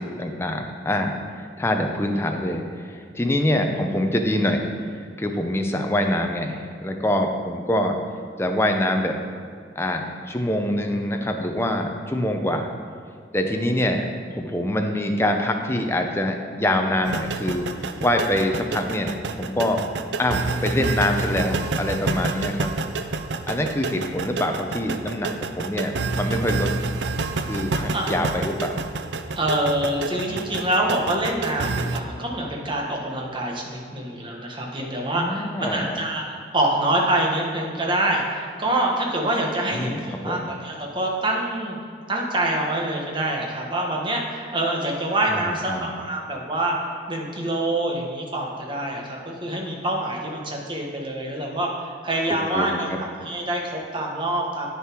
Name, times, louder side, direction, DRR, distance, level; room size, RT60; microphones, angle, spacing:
voice 1, 0.0-4.7 5.2-8.0 8.4-9.2 9.8-12.7 13.3-14.0 14.3-17.7 18.0-19.1 19.4-19.8 20.2-22.7 23.5-26.7 27.4-28.8 35.1-36.0 39.7-40.5 45.3-45.9 52.5-52.8, left 1 dB, 15° left, 3 dB, 0.7 m, -25 dB
sound 1, 17.1-32.0, right 3 dB, 75° right, 0.5 m, -28 dB
voice 2, 29.4-41.8 42.1-46.7 47.1-54.7, right 1 dB, 25° right, -1 dB, 1.3 m, -26 dB
9.3 x 6.9 x 4.5 m, 2.2 s
head